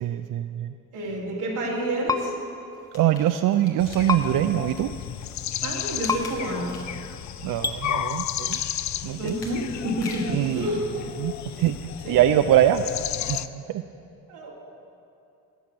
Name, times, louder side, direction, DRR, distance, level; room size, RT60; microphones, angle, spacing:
voice 1, 0.0-0.7 2.9-4.9 7.4-8.6 9.0-9.4 10.3-10.6 11.2-11.3 11.6-11.8 12.1-12.8 13.3-13.4 13.7-13.8, right 12 dB, 60° right, 9 dB, 0.5 m, -22 dB
voice 2, 0.9-2.3 5.6-6.7 9.2-10.9 12.0-12.2 14.3-14.5, right 1 dB, 85° right, -4 dB, 2.2 m, -29 dB
sound 1, 2.1-2.2 4.1-4.2 6.1-6.2 7.6-7.8, left 4 dB, 10° left, 0.6 m, -24 dB
sound 2, 2.7-4.5 5.1-7.1 7.5-10.5 11.0-11.1, left 3 dB, 80° left, 1.7 m, -44 dB
sound 3, 3.8-13.5, left 11 dB, 50° left, 0.4 m, -33 dB
11.5 x 5.9 x 8.3 m, 2.6 s
hypercardioid pair, 50°, 37 cm